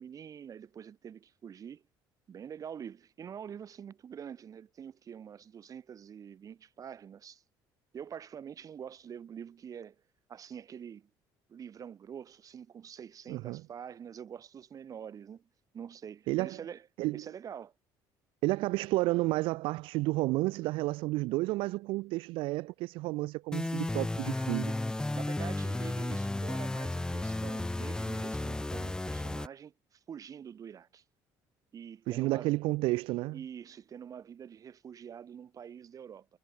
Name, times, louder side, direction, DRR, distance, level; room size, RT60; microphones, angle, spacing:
voice 1, 0.0-1.8 2.3-7.4 7.9-10.0 10.3-11.1 11.5-15.4 15.7-16.9 17.1-17.7 25.1-31.0 31.7-32.5 33.3-36.3, right 8 dB, 40° right, 1.0 m, -46 dB
voice 2, 13.3-13.6 16.3-16.6 17.0-17.2 18.4-24.7 32.1-33.4, right 20 dB, 75° right, 0.5 m, -31 dB
sound 1, 23.5-29.5, left 2 dB, 10° left, 0.7 m, -33 dB
cardioid pair, 100°, 9 cm